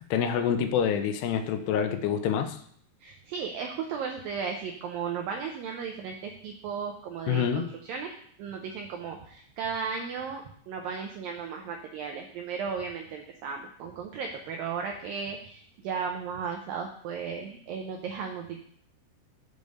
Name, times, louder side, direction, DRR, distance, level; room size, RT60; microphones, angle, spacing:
voice 1, 0.1-2.6 7.3-7.7, left 8 dB, 80° left, 8 dB, 2.6 m, -26 dB
voice 2, 3.0-18.6, right 6 dB, 90° right, 3 dB, 2.0 m, -35 dB
6.8 x 5.3 x 6.3 m, 0.62 s
omnidirectional pair, 4.9 m